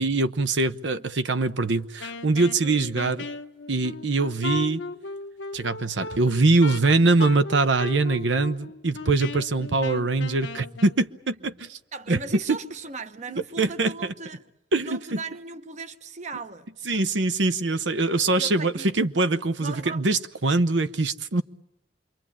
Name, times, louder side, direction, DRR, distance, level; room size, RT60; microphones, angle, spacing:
voice 1, 0.0-3.3 3.7-4.8 5.5-11.8 12.1-12.2 12.5-12.6 13.3-14.1 14.7-15.2 16.9-21.4, right 3 dB, 85° right, 0.9 m, -23 dB
Wind instrument woodwind instrument, 2.0-11.0, left 3 dB, 80° left, 1.0 m, -37 dB
voice 2, 11.9-14.4 14.8-16.7 18.4-18.9 19.6-20.2, right 4 dB, 40° right, 1.0 m, -37 dB
27.0 x 23.5 x 8.7 m
head